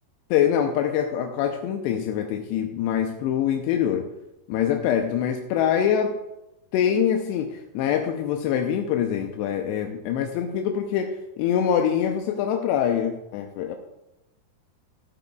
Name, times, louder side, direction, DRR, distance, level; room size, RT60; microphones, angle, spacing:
voice 1, 0.3-4.1 4.5-6.2 6.7-13.8, left 9 dB, 85° left, 4 dB, 2.8 m, -24 dB
15.0 x 9.3 x 2.3 m, 0.95 s
omnidirectional pair, 4.9 m